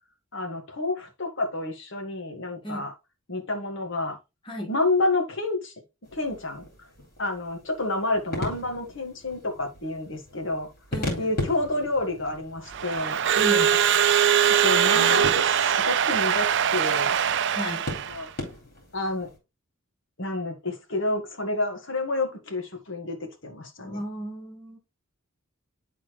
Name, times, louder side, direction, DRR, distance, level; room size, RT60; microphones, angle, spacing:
voice 1, 0.3-2.9 3.3-4.2 4.7-5.7 6.1-6.6 7.2-10.7 11.2-13.2 14.6-17.2 18.1-18.3 18.9-19.3 20.2-24.0, left 2 dB, 65° left, 1.8 m, -29 dB
sound 1, 6.0-19.4, left 2 dB, 45° left, 4.1 m, -39 dB
voice 2, 10.9-11.3 13.3-13.8 14.9-15.3 17.5-17.8 23.8-24.8, equal, 25° left, 1.4 m, -34 dB
Crowd / Alarm, 12.7-18.2, right 8 dB, 60° right, 0.5 m, -22 dB
12.0 x 4.2 x 3.1 m
head